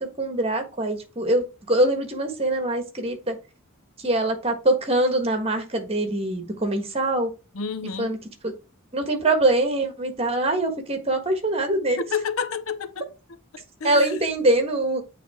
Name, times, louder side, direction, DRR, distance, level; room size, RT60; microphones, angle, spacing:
voice 1, 0.2-3.3 4.0-7.3 8.0-8.2 8.4-8.5 8.9-12.0 13.8-15.0, right 1 dB, 30° right, 1.4 m, -23 dB
voice 2, 7.5-8.1 12.0-13.1 13.5-14.2, left 5 dB, 70° left, 0.6 m, -30 dB
8.5 x 3.3 x 3.5 m
head